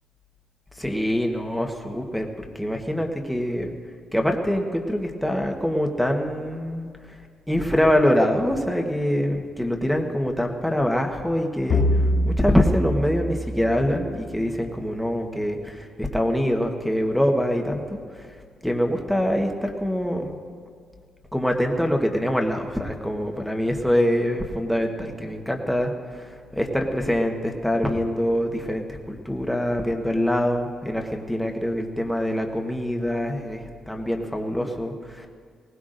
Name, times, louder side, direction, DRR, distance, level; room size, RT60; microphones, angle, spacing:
voice 1, 0.8-3.7 4.1-7.2 7.5-18.0 18.6-20.3 21.3-35.3, equal, ahead, 2 dB, 1.2 m, -24 dB
sound 1, 11.7-14.3, equal, 50° left, 2.5 m, -24 dB
20.0 x 18.5 x 2.6 m, 2.1 s
cardioid pair, 150°, 0 cm